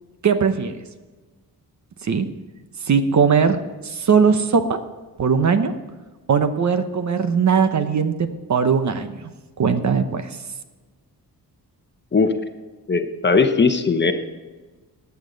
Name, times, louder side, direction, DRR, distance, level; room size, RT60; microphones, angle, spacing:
voice 1, 0.2-0.7 2.0-2.3 2.8-3.6 3.8-4.8 5.2-5.7 6.3-9.2 9.6-10.4, right 6 dB, 45° right, 9 dB, 0.9 m, -19 dB
voice 2, 12.9-14.1, left 4 dB, 30° left, 7 dB, 0.9 m, -18 dB
15.0 x 9.6 x 4.0 m, 1.3 s
wide cardioid pair, 125°, 39 cm